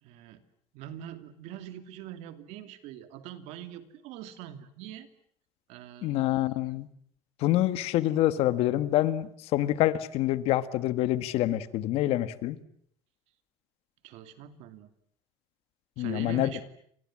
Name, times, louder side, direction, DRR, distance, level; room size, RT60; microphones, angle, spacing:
voice 1, 0.0-0.4 0.7-5.1 5.7-6.5 14.0-14.9 16.0-16.6, right 11 dB, 80° right, 9 dB, 2.7 m, -43 dB
voice 2, 6.0-6.9 7.4-12.6 16.0-16.5, left 14 dB, 65° left, 13 dB, 1.6 m, -26 dB
29.5 x 26.0 x 7.5 m, 0.65 s
cardioid pair, 175°, 11 cm